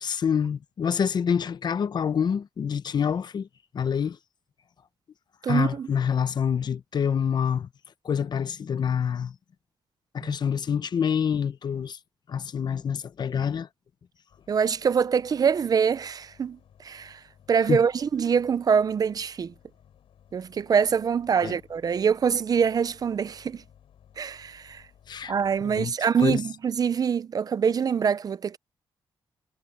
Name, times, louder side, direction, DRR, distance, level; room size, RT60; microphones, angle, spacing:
voice 1, 0.0-3.5 3.7-4.2 5.5-7.7 8.0-9.3 10.1-12.0 12.3-13.7 17.7-17.8 21.4-21.6 25.1-25.3 25.6-25.9 26.2-26.4, left 7 dB, 50° left, 0.8 m, -26 dB
voice 2, 5.4-5.9 10.2-10.3 14.5-17.2 17.5-19.5 20.3-23.6 24.2-24.8 25.3-28.6, right 6 dB, 45° right, 0.5 m, -24 dB
sound 1, 14.3-25.8, left 9 dB, 85° left, 6.5 m, -58 dB
wide cardioid pair, 130°, 9 cm